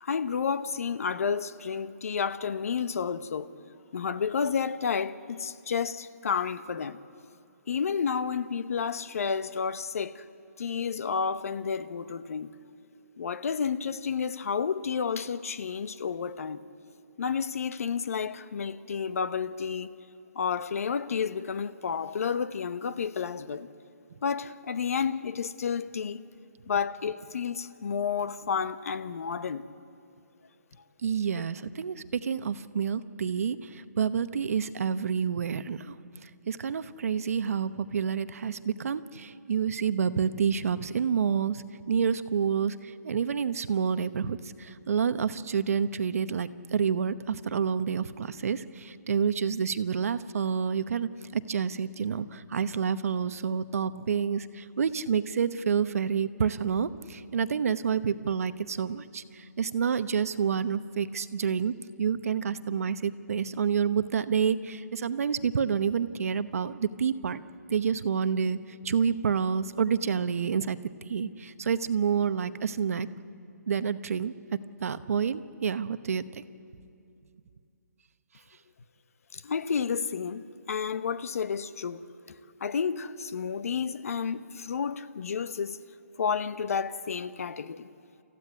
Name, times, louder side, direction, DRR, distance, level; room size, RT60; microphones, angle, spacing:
voice 1, 0.0-3.5 3.9-7.0 7.7-10.2 10.6-12.5 13.2-16.6 17.2-19.9 20.3-23.7 24.2-26.2 26.7-29.6 79.3-82.0 82.6-85.8 86.2-87.9, left 6 dB, 55° left, 0.9 m, -31 dB
voice 2, 31.0-35.9 36.2-67.4 67.7-68.6 68.8-70.8 71.1-73.1 73.7-76.4, right 7 dB, 55° right, 0.9 m, -28 dB
28.5 x 15.0 x 9.7 m
hypercardioid pair, 165°, 9 cm